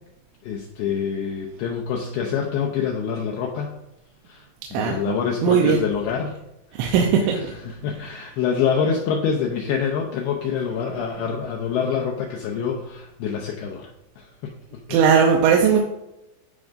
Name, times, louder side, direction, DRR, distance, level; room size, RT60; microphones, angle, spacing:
voice 1, 0.4-3.7 4.3-4.5 4.7-6.4 6.8-6.9 7.7-13.9 14.2-15.0, left 7 dB, 90° left, 0 dB, 2.2 m, -26 dB
voice 2, 5.4-5.8 6.7-7.4 14.9-15.8, right 7 dB, 80° right, 1 dB, 3.0 m, -18 dB
13.0 x 5.1 x 2.6 m, 0.89 s
omnidirectional pair, 5.4 m